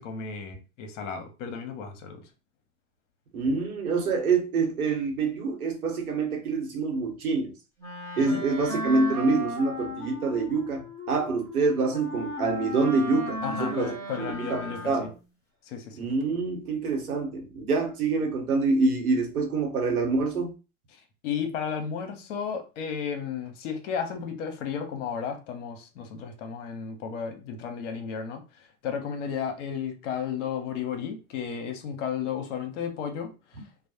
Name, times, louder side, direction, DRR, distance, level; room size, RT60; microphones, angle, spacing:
voice 1, 0.0-2.2 8.2-8.4 13.4-15.1 15.6-16.0 20.9-33.3, left 7 dB, 55° left, 0.8 m, -33 dB
voice 2, 3.3-7.5 8.2-13.9 14.2-15.1 16.0-20.5, right 4 dB, 85° right, 0.9 m, -26 dB
Wind instrument woodwind instrument, 7.8-15.2, left 1 dB, 5° left, 0.9 m, -36 dB
2.4 x 2.0 x 2.8 m
hypercardioid pair, 105°, 43 cm